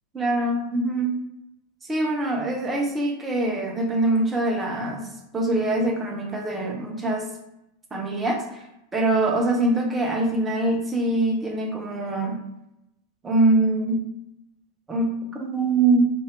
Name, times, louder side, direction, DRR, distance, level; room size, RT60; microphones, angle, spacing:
voice 1, 0.1-1.1 1.9-5.0 5.3-7.3 7.9-8.6 8.9-12.4 13.2-14.1 14.9-16.1, right 2 dB, 15° right, 0 dB, 0.6 m, -23 dB
2.7 x 2.5 x 3.1 m, 0.86 s
figure-of-eight pair, 90°, 0 cm